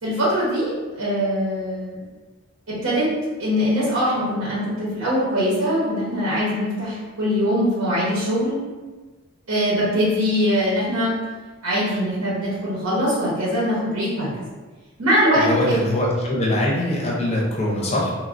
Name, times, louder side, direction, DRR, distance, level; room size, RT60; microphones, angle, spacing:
voice 1, 0.0-2.0 2.7-3.1 3.4-8.6 9.5-11.1 11.6-14.3 15.0-15.8, equal, 85° right, -7 dB, 0.8 m, -22 dB
voice 2, 15.4-18.1, left 1 dB, 30° left, -3 dB, 0.5 m, -22 dB
3.1 x 2.1 x 2.4 m, 1.3 s
head